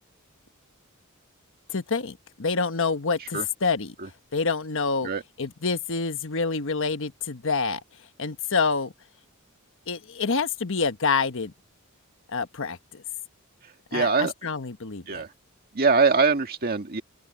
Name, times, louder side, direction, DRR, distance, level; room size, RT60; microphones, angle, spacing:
voice 1, 1.7-3.9 4.3-5.1 5.4-7.8 8.2-8.9 9.9-11.5 12.3-13.0 13.9-15.2, left 4 dB, 65° left, 1.3 m, -27 dB
voice 2, 13.9-14.3 15.1-15.3 15.7-17.0, right 4 dB, 45° right, 1.9 m, -22 dB
open air
head